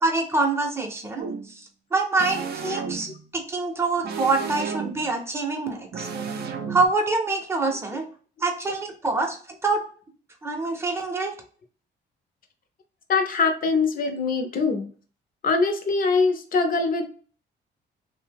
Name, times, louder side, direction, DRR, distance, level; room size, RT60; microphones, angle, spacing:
voice 1, 0.0-1.3 1.9-6.1 6.7-8.1 8.4-9.8 10.4-11.3, right 3 dB, 10° right, 2 dB, 0.7 m, -25 dB
sound 1, 1.2-1.5 2.2-3.2 4.0-5.1 5.9-6.9, right 6 dB, 55° right, 0.5 m, -32 dB
voice 2, 13.1-14.9 15.4-17.1, left 4 dB, 45° left, 6 dB, 0.6 m, -23 dB
2.7 x 2.1 x 3.3 m, 0.42 s
cardioid pair, 90°, 20 cm